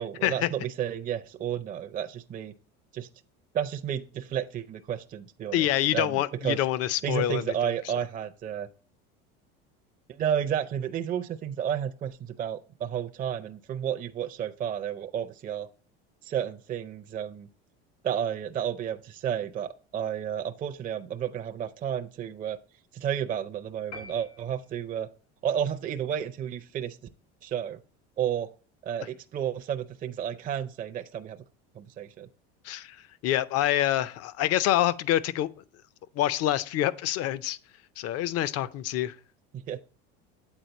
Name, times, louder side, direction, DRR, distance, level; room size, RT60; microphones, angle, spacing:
voice 1, 0.0-2.5 2.9-3.1 3.5-5.7 5.9-6.6 7.0-8.7 10.1-15.7 16.2-17.5 18.0-22.6 22.9-25.1 25.4-27.0 27.4-27.8 28.2-28.5 28.8-31.4 31.8-32.3 39.5-39.8, right 9 dB, 25° right, 0.4 m, -32 dB
voice 2, 5.5-7.9 32.6-35.5 36.1-37.6 38.0-39.2, left 13 dB, 50° left, 0.5 m, -26 dB
sound 1, 23.9-25.2, left 3 dB, 70° left, 2.0 m, -46 dB
8.0 x 4.2 x 4.0 m
supercardioid pair, 105°, 32 cm